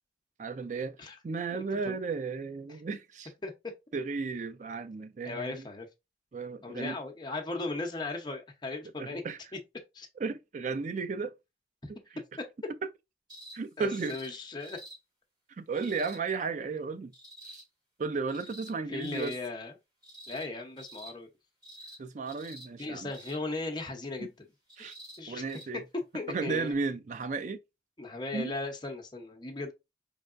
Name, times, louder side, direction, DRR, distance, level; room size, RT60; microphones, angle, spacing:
voice 1, 0.4-1.0 1.2-3.3 3.9-5.7 6.3-7.0 9.0-9.4 10.2-11.3 11.9-12.2 13.5-14.2 15.6-17.1 17.4-17.6 18.0-19.4 22.0-23.1 24.2-24.3 24.8-25.0 25.3-25.8 26.3-27.6 28.3-28.5, right 4 dB, 40° right, 0.3 m, -34 dB
voice 2, 1.5-2.0 3.4-3.7 5.2-5.9 6.6-9.2 9.9-10.1 11.8-11.9 12.4-12.5 13.8-14.8 18.9-19.7 20.3-21.3 22.8-24.5 24.8-24.9 25.2-25.4 26.1-26.7 28.0-29.7, left 2 dB, 25° left, 0.7 m, -37 dB
sound 1, 13.3-13.6 13.9-14.3 14.6-15.0 15.7-16.2 17.1-17.6 18.3-18.7 19.0-19.4 20.0-20.5 20.8-21.1 21.6-22.0 22.3-22.7 23.1-23.4 24.7-25.2 25.5-25.6 26.7-26.8, right 1 dB, 25° right, 2.0 m, -48 dB
4.6 x 3.3 x 2.5 m
head